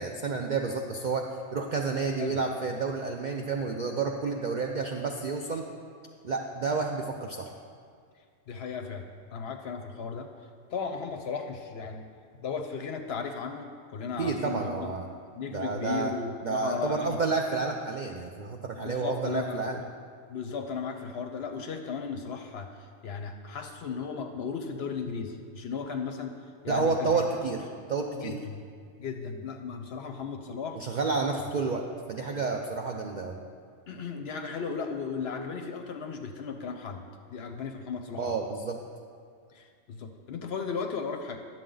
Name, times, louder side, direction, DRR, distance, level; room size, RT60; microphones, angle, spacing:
voice 1, 0.0-5.7 6.2-7.5 14.2-15.1 15.5-16.1 16.4-19.8 26.7-27.6 27.9-28.4 30.7-33.4 38.2-38.8, right 4 dB, 60° right, 2 dB, 0.4 m, -30 dB
voice 2, 8.5-10.3 10.7-12.0 12.4-14.9 15.3-17.2 18.7-19.9 20.3-26.3 26.6-27.1 28.1-28.6 29.0-30.8 33.9-37.0 37.3-38.4 39.5-41.4, left 5 dB, 60° left, 5 dB, 0.8 m, -36 dB
10.5 x 7.5 x 3.8 m, 2.1 s
omnidirectional pair, 1.4 m